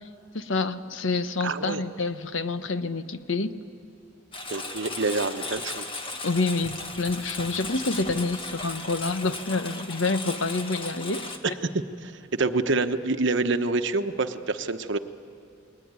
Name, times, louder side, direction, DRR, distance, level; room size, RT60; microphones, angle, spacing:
voice 1, 0.3-3.5 6.2-11.5, left 3 dB, 65° left, 11 dB, 1.1 m, -28 dB
voice 2, 1.4-1.8 4.5-5.9 11.4-15.0, right 3 dB, 60° right, 9 dB, 1.1 m, -27 dB
Engine, 4.3-11.4, left 3 dB, 25° left, 1.7 m, -36 dB
29.5 x 20.5 x 9.6 m, 2.8 s
head